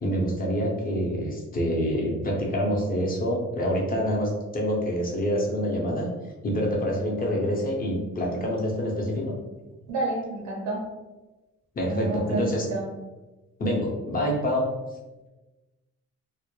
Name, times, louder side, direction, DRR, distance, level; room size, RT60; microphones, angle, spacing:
voice 1, 0.0-6.1 6.4-9.4 11.7-12.7 13.6-14.7, equal, 30° left, -1 dB, 0.7 m, -26 dB
voice 2, 9.9-10.8 11.9-12.9, right 2 dB, 85° right, -1 dB, 0.6 m, -30 dB
2.2 x 2.0 x 3.0 m, 1.1 s
cardioid pair, 90°, 30 cm